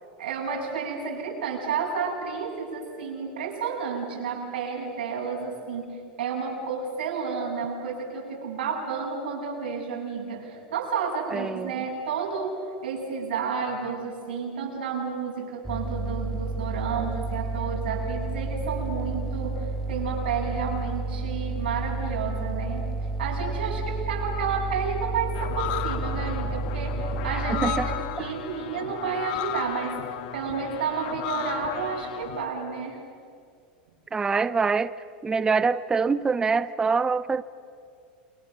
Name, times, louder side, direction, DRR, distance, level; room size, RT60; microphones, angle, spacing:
voice 1, 0.2-22.9 23.2-30.0 30.3-33.0, right 5 dB, 90° right, -1 dB, 7.6 m, -31 dB
voice 2, 11.3-11.7 27.3-27.9 34.1-34.9 35.2-37.4, right 5 dB, 15° right, 15 dB, 0.6 m, -25 dB
sound 1, 15.6-28.0, right 3 dB, 5° left, 3.6 m, -31 dB
sound 2, 25.3-32.5, left 11 dB, 65° left, 1.9 m, -34 dB
28.5 x 26.5 x 6.6 m, 2.3 s
supercardioid pair, 130°, 5 cm